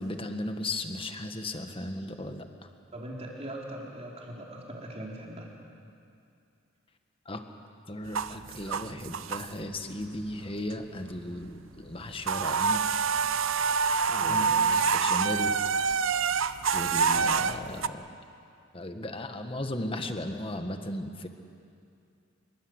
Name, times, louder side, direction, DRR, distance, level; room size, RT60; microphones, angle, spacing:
voice 1, 0.0-2.4 7.2-7.4 7.9-12.8 14.1-15.6 16.7-18.1 18.7-21.3, left 1 dB, 25° left, 6 dB, 1.6 m, -36 dB
voice 2, 2.9-5.5 14.3-14.5 17.1-17.4, right 1 dB, 30° right, -2 dB, 4.1 m, -40 dB
sound 1, 8.1-9.8 10.2-11.1 11.4-11.5 11.8-17.9, right 5 dB, 70° right, 0.7 m, -27 dB
25.5 x 23.0 x 8.1 m, 2.5 s
head